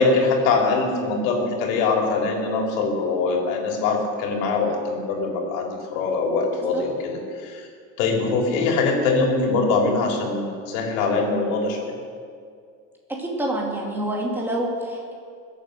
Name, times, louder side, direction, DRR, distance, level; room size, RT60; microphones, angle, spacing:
voice 1, 0.0-7.7 8.0-11.9, left 3 dB, 80° left, 0 dB, 3.6 m, -23 dB
voice 2, 13.1-15.1, right 1 dB, 5° right, -2 dB, 2.5 m, -27 dB
22.0 x 8.4 x 6.6 m, 2.2 s
cardioid pair, 165°, 39 cm